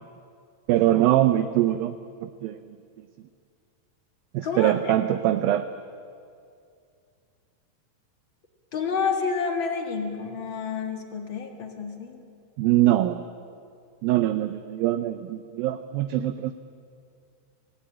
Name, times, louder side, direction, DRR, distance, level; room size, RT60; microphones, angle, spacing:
voice 1, 0.7-2.0 2.2-2.6 4.3-5.7 12.6-13.2 14.0-16.5, right 13 dB, 80° right, 9 dB, 2.2 m, -23 dB
voice 2, 4.4-5.2 8.7-12.2, left 5 dB, 40° left, 3 dB, 1.8 m, -29 dB
27.5 x 17.5 x 8.8 m, 2.3 s
omnidirectional pair, 4.7 m